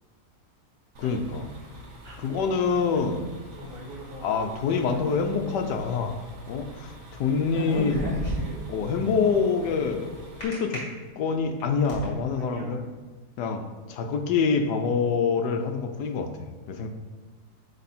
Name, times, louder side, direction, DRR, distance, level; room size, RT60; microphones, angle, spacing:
sound 1, 0.9-10.4, equal, 55° right, 1.5 m, -46 dB
voice 1, 1.0-1.4 2.2-3.2 4.2-6.1 6.5-8.0 8.7-10.1 10.4-10.8 11.2-12.8 13.4-13.6 13.9-16.9, left 5 dB, 80° left, 6 dB, 1.3 m, -26 dB
voice 2, 2.0-2.4 3.6-5.7 7.5-10.1 12.3-12.8, equal, 25° right, -4 dB, 1.9 m, -43 dB
sound 2, 7.5-8.7 10.4-10.8 11.4-12.0, equal, 25° left, 2.2 m, -31 dB
9.8 x 3.5 x 4.2 m, 1.3 s
omnidirectional pair, 1.8 m